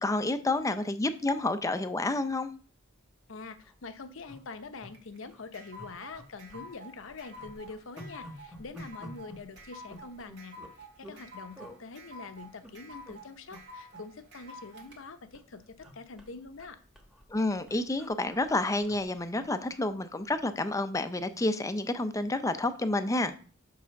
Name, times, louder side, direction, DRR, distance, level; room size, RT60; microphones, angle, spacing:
voice 1, 0.0-2.5 17.3-23.3, left 2 dB, 15° left, 10 dB, 0.5 m, -29 dB
sound 1, 2.8-2.9 3.2-3.3 3.5-3.8 4.2-4.9 5.3-5.4 5.8-6.7 7.0-11.2 11.5-11.8 12.4-13.2 13.5-13.6 13.9-15.1 15.3-19.9 20.2-20.4, equal, 5° right, 1.1 m, -50 dB
voice 2, 3.3-16.8, left 4 dB, 65° left, 10 dB, 0.8 m, -45 dB
sound 2, 4.9-15.0, equal, 60° right, 1.5 m, -49 dB
5.7 x 4.8 x 6.3 m, 0.40 s
head